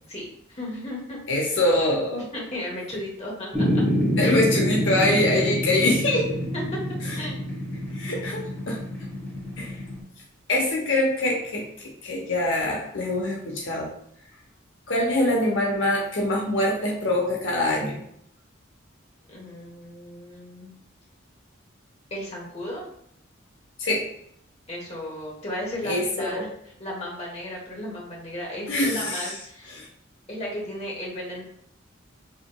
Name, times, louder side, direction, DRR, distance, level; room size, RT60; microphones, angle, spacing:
voice 1, 0.1-1.2 2.3-3.8 4.2-4.3 6.5-6.6 7.2-7.4 19.3-20.7 22.1-22.9 24.7-26.5 26.8-29.8 30.3-31.4, left 1 dB, 30° left, -3 dB, 1.1 m, -35 dB
voice 2, 1.3-2.3 4.2-6.2 7.1-7.2 7.9-8.8 9.6-9.8 10.5-11.6 12.0-13.9 14.9-18.0 23.8-24.1 25.8-26.4 28.7-29.3 29.7-29.9, left 1 dB, 70° left, -1 dB, 0.8 m, -24 dB
sound 1, 3.5-10.0, equal, 10° left, 1.1 m, -27 dB
4.9 x 2.9 x 2.2 m, 0.70 s
head